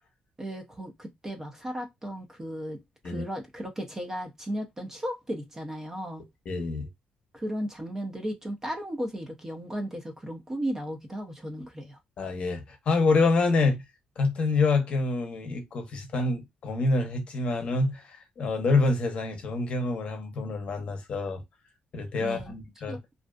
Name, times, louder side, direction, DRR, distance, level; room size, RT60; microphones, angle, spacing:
voice 1, 0.4-2.8 3.0-6.2 7.3-12.0 22.2-22.5 22.9-23.0, equal, 15° right, 0.5 m, -35 dB
voice 2, 6.5-6.9 12.2-13.8 14.2-21.4 21.9-23.0, left 3 dB, 45° left, 0.7 m, -27 dB
2.5 x 2.3 x 2.2 m
cardioid pair, 165°, 3 cm